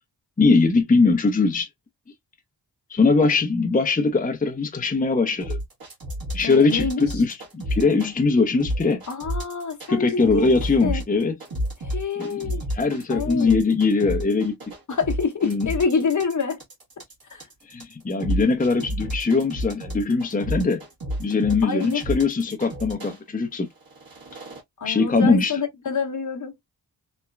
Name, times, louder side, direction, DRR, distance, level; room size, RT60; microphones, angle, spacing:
voice 1, 0.4-1.7 2.9-5.6 6.3-9.0 9.9-11.4 12.2-14.6 15.4-15.7 17.7-20.8 21.2-23.7 24.8-25.6, left 4 dB, 20° left, 0.6 m, -21 dB
sound 1, 5.4-8.1 8.6-9.9 10.2-23.2 23.8-24.6, equal, 55° right, 1.4 m, -31 dB
voice 2, 6.4-7.0 9.1-10.1 10.3-11.0 11.9-12.6 13.1-13.6 14.9-16.6 17.3-17.5 21.6-22.0 24.8-26.5, left 5 dB, 45° left, 0.9 m, -27 dB
3.1 x 2.1 x 2.2 m
cardioid pair, 50°, 43 cm